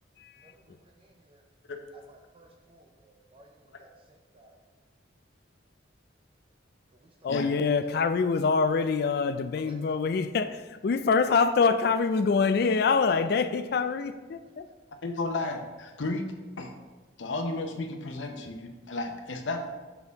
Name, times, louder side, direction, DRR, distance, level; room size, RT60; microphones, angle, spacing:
voice 1, 0.4-1.4 1.9-4.6 6.9-7.5 7.8-8.0 9.5-10.0 14.7-14.8, right 1 dB, 30° right, 1 dB, 0.4 m, -57 dB
voice 2, 7.2-14.6, left 5 dB, 55° left, 11 dB, 0.3 m, -25 dB
voice 3, 15.0-16.7 17.2-19.7, left 2 dB, 85° left, 5 dB, 0.7 m, -33 dB
6.8 x 4.3 x 3.5 m, 1.2 s
head